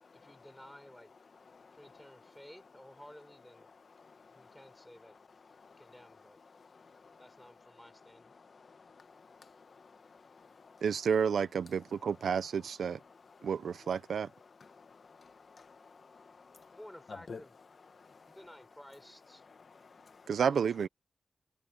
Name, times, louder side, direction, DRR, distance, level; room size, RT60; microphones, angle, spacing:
voice 1, 0.1-1.1 1.7-3.7 4.3-5.2 5.8-6.4 7.2-8.3 16.7-17.6 18.3-19.4 20.5-20.9, left 1 dB, 5° left, 5.8 m, -54 dB
voice 2, 1.5-2.0 4.0-4.5 5.6-5.8 6.5-7.2 8.4-10.8 13.4-13.5 14.7-16.8 17.3-17.4 17.9-18.4 19.6-20.3, left 5 dB, 50° left, 1.5 m, -55 dB
voice 3, 10.8-13.0 13.4-14.3 20.3-20.9, right 7 dB, 85° right, 0.8 m, -30 dB
wide cardioid pair, 105°, 0 cm